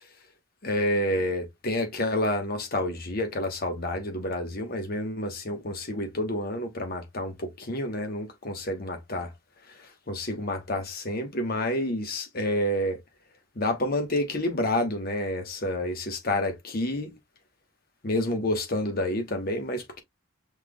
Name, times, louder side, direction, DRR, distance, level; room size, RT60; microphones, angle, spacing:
voice 1, 0.6-9.3 9.7-13.0 13.6-17.1 18.0-20.0, left 1 dB, 45° left, 1.1 m, -29 dB
5.8 x 3.3 x 2.2 m
head